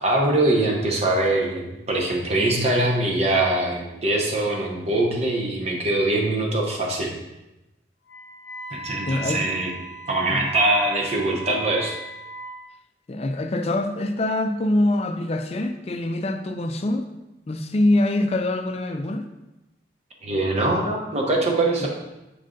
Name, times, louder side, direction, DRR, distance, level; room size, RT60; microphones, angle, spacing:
voice 1, 0.0-7.1 8.7-9.7 10.1-12.0 20.2-21.9, right 2 dB, 35° right, -1 dB, 0.9 m, -23 dB
Wind instrument woodwind instrument, 8.0-12.6, right 1 dB, 75° left, 0.6 m, -38 dB
voice 2, 9.1-9.4 10.3-10.4 13.1-17.0 17.5-19.2 21.8-21.9, left 1 dB, 35° left, 7 dB, 0.4 m, -24 dB
6.5 x 3.8 x 3.8 m, 0.98 s
head